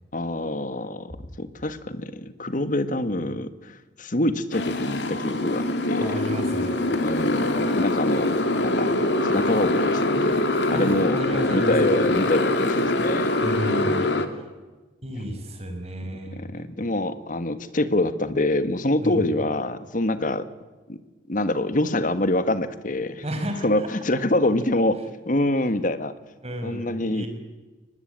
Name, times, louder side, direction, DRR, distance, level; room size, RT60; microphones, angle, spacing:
voice 1, 0.1-6.2 7.0-8.4 8.6-8.9 9.2-11.2 11.5-13.3 16.4-20.5 20.9-21.0 21.3-23.2 23.6-25.0 25.3-26.1 26.6-27.3, left 1 dB, 45° left, 12 dB, 1.5 m, -25 dB
Motorcycle, 4.5-14.3, left 1 dB, 70° left, 2.3 m, -24 dB
voice 2, 6.0-7.0 10.7-12.0 12.8-12.9 13.4-14.5 15.0-16.6 19.0-19.3 23.2-23.9 26.4-27.3, equal, 35° right, 5 dB, 5.2 m, -33 dB
23.5 x 19.5 x 9.2 m, 1.2 s
head